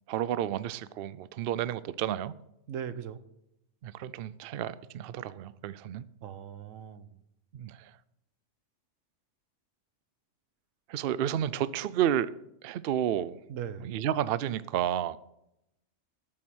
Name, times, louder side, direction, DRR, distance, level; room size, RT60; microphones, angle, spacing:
voice 1, 0.1-2.3 3.8-6.0 7.5-7.9 10.9-12.3 12.6-13.4 13.8-15.2, right 11 dB, 60° right, 0.6 m, -31 dB
voice 2, 2.7-3.2 6.2-7.2 13.5-13.9, right 8 dB, 90° right, 1.2 m, -39 dB
13.5 x 7.3 x 6.2 m
omnidirectional pair, 1.3 m